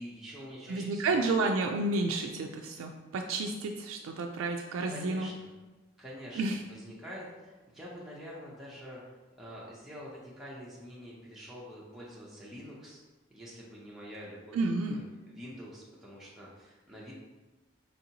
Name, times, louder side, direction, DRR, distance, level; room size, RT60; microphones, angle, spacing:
voice 1, 0.0-1.2 4.9-5.5 6.0-6.4 6.7-9.0 9.4-13.0 13.3-15.0 15.3-17.1, equal, ahead, -7 dB, 0.6 m, -46 dB
voice 2, 0.7-5.3 6.4-6.6 14.5-15.0, right 3 dB, 90° right, 3 dB, 0.3 m, -31 dB
4.4 x 2.6 x 2.8 m, 1.2 s
head